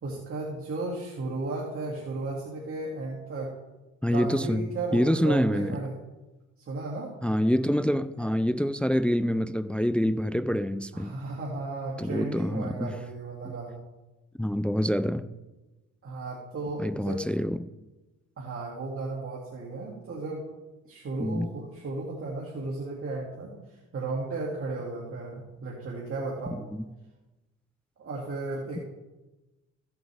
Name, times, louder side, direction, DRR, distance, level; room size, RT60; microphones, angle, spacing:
voice 1, 0.0-3.5 4.1-6.0 6.7-7.1 10.9-13.8 16.0-17.3 18.4-20.4 20.8-23.5 23.9-26.6 28.0-28.8, right 3 dB, 45° right, 2.3 m, -34 dB
voice 2, 4.0-5.8 7.2-11.1 12.0-12.9 13.5-13.6 14.4-15.3 16.8-17.7 21.2-21.5 26.7-26.8, equal, 5° left, 0.4 m, -26 dB
15.0 x 8.0 x 3.5 m
cardioid pair, 90°, 30 cm